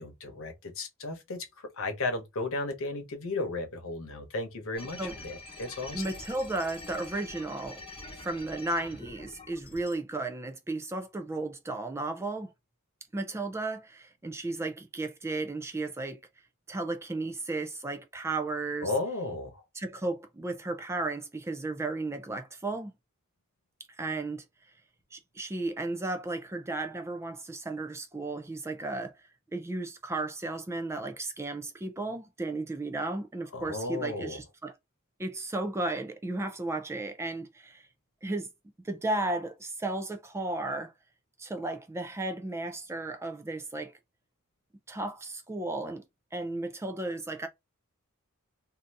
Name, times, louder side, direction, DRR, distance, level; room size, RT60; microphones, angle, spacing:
voice 1, 0.0-1.5 1.7-6.0 18.8-19.6 33.5-34.4, left 2 dB, 65° left, 1.0 m, -34 dB
sound 1, 4.7-9.9, left 2 dB, 25° left, 1.0 m, -45 dB
voice 2, 5.9-7.8 8.2-12.5 13.1-16.2 16.7-18.9 19.7-22.9 24.0-24.4 25.1-29.2 29.5-34.7 35.2-37.8 38.2-38.5 38.8-40.9 41.4-43.9 44.9-46.0 46.3-47.5, right 2 dB, 10° right, 0.4 m, -34 dB
2.6 x 2.6 x 3.3 m
head